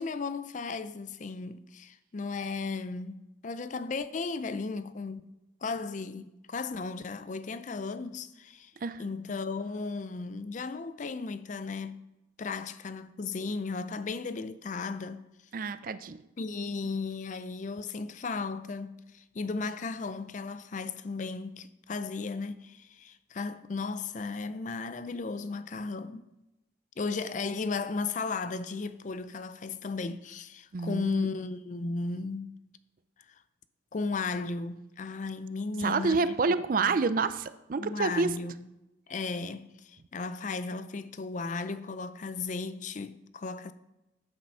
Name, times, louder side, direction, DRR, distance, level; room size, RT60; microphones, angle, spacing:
voice 1, 0.0-5.3 5.6-8.7 9.0-12.0 12.4-15.3 16.4-26.3 27.0-32.6 33.9-36.3 36.8-37.0 37.8-38.7 39.1-43.7, left 4 dB, 40° left, 0.4 m, -35 dB
voice 2, 15.5-16.2 30.7-31.3 35.8-38.4, right 4 dB, 45° right, 0.4 m, -28 dB
9.0 x 7.8 x 5.5 m
head